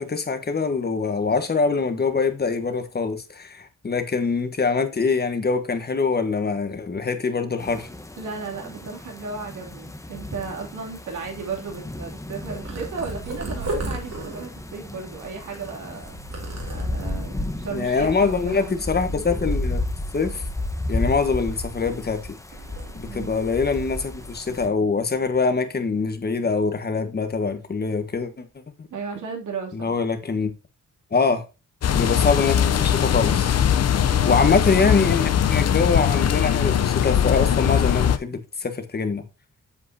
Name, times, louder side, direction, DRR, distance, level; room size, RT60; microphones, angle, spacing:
voice 1, 0.0-7.9 17.7-19.8 20.1-20.4 20.9-22.4 22.9-28.5 29.7-30.5 31.1-31.4 31.9-33.5 34.2-39.2, left 4 dB, 30° left, 1.4 m, -24 dB
sound 1, 7.6-24.7, left 1 dB, 10° left, 1.0 m, -33 dB
voice 2, 8.2-18.8 23.1-23.4 28.9-29.9 34.1-34.7, right 5 dB, 75° right, 2.9 m, -35 dB
Purr, 12.4-17.2 17.8-18.3 18.5-19.7 20.1-22.2 22.5-23.8 24.1-24.4 25.0-25.4, right 2 dB, 55° right, 2.8 m, -36 dB
sound 2, 31.8-38.2, left 9 dB, 55° left, 0.7 m, -20 dB
8.4 x 7.6 x 2.8 m
cardioid pair, 110°, 30 cm